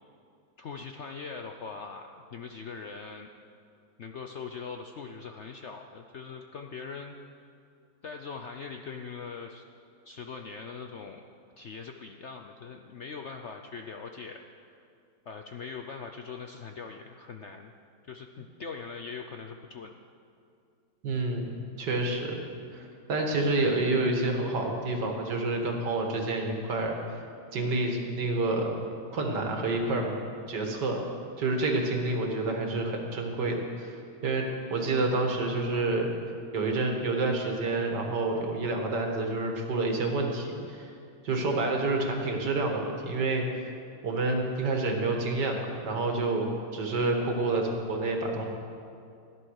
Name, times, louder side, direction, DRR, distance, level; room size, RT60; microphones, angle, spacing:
voice 1, 0.6-3.3 4.0-7.2 8.0-9.6 10.0-11.2 11.6-14.4 15.3-17.7 18.1-19.9, left 5 dB, 60° left, 4 dB, 0.7 m, -41 dB
voice 2, 21.0-22.4 22.7-22.8 23.1-27.0 27.5-28.7 29.1-30.2 30.5-31.0 31.4-36.1 36.5-40.9 41.2-43.4 44.0-48.4, right 2 dB, 75° right, 2 dB, 2.3 m, -28 dB
15.5 x 11.0 x 6.5 m, 2.4 s
omnidirectional pair, 1.9 m